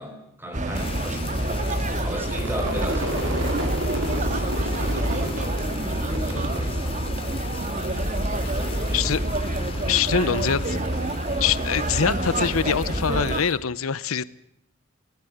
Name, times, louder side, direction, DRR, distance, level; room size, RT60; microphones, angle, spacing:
voice 1, 0.0-1.5 2.0-8.1 8.5-9.2, equal, 10° right, 5 dB, 5.2 m, -37 dB
sound 1, 0.5-13.4, right 1 dB, 35° right, 1.9 m, -27 dB
Fire, 0.7-13.6, left 5 dB, 25° left, 2.7 m, -41 dB
Crowd / Fireworks, 2.3-7.7 8.0-8.6 8.9-12.5, right 1 dB, 60° right, 5.5 m, -33 dB
voice 2, 9.9-10.8 11.4-14.2, left 7 dB, 80° left, 18 dB, 0.8 m, -24 dB
24.5 x 18.5 x 7.9 m, 0.82 s
head